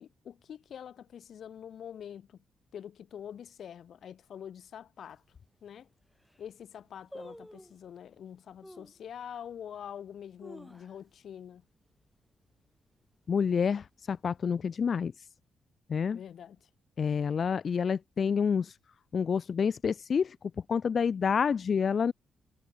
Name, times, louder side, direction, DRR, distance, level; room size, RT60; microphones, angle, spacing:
voice 1, 0.0-2.4 2.7-5.2 5.6-5.9 6.4-11.6 16.1-16.7, left 9 dB, 55° left, 3.1 m, -45 dB
sound 1, 5.1-5.2 5.8-5.9 6.1-6.5 7.1-7.9 8.6-9.0 9.5-9.6 10.2-11.3 11.6-11.7 12.0-12.4 12.8-13.2 13.8-14.5 14.8-14.9, equal, ahead, 1.8 m, -49 dB
voice 2, 13.3-15.3 15.9-16.2 17.0-18.8 19.1-20.4 20.7-22.1, left 6 dB, 35° left, 0.4 m, -28 dB
cardioid pair, 165°, 0 cm